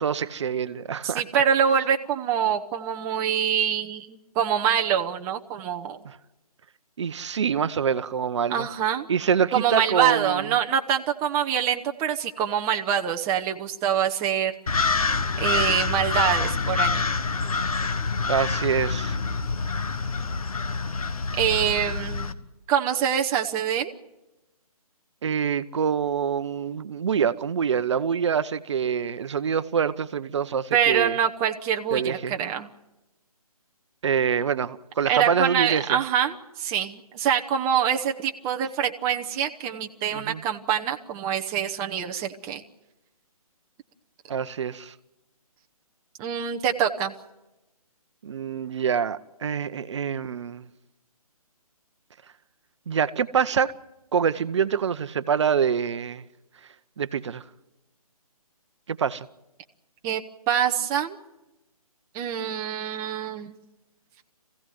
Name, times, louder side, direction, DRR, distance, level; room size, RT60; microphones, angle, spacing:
voice 1, 0.0-1.2 6.0-6.2 7.0-8.7 9.1-10.5 18.3-19.2 25.2-31.2 31.9-32.3 34.0-36.0 40.1-40.4 44.3-44.9 48.2-50.6 52.9-53.7 54.1-56.2 57.0-57.4 58.9-59.3, right 7 dB, 50° right, 0.8 m, -25 dB
voice 2, 1.0-6.0 8.5-9.1 9.5-14.8 15.4-17.1 21.4-22.3 22.7-23.9 30.7-32.7 35.1-42.6 46.2-47.1 60.0-61.2 62.1-63.6, right 9 dB, 15° right, 0.8 m, -25 dB
sound 1, 14.7-22.3, left 4 dB, 70° left, 1.3 m, -26 dB
24.0 x 16.0 x 9.2 m
figure-of-eight pair, 145°, 19 cm